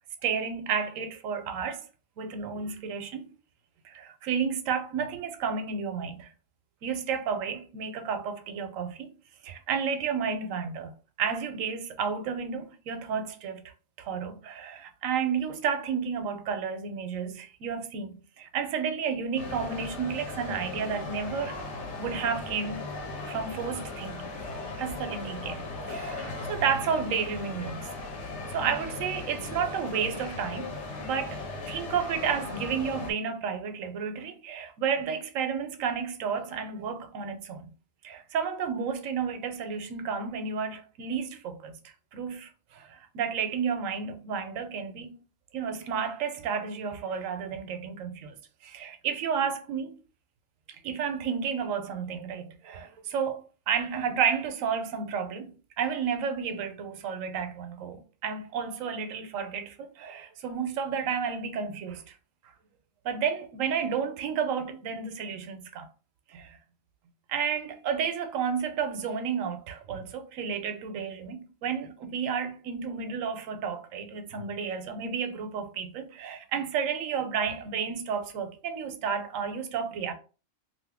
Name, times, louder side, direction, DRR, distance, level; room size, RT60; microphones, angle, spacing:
voice 1, 0.2-1.8 2.2-3.3 3.8-6.3 6.8-9.1 9.4-13.7 14.0-21.6 22.0-22.9 23.2-24.3 24.8-27.9 28.5-37.7 38.0-41.8 42.1-45.1 45.5-48.3 48.6-50.0 50.7-62.1 63.0-65.9 66.3-66.6 67.3-80.1, right 6 dB, 85° right, 1.0 m, -31 dB
sound 1, 19.4-33.1, left 3 dB, 65° left, 1.1 m, -37 dB
2.7 x 2.6 x 3.4 m
omnidirectional pair, 1.4 m